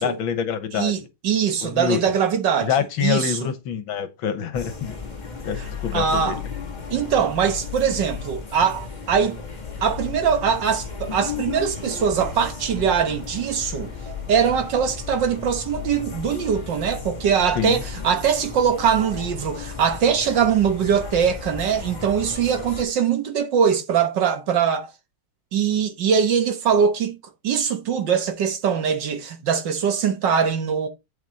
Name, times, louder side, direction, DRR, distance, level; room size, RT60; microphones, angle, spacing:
voice 1, 0.0-0.9 1.6-2.0 2.6-5.0 5.4-6.4 17.6-17.8, left 8 dB, 70° left, 1.8 m, -26 dB
voice 2, 0.7-2.7 3.0-3.5 5.6-5.7 5.9-6.4 6.9-9.4 9.8-13.9 14.3-24.9 25.5-27.2 27.4-30.9, right 7 dB, 60° right, 1.7 m, -22 dB
sound 1, 4.5-22.8, left 6 dB, 25° left, 1.5 m, -34 dB
9.0 x 5.9 x 4.0 m
omnidirectional pair, 2.3 m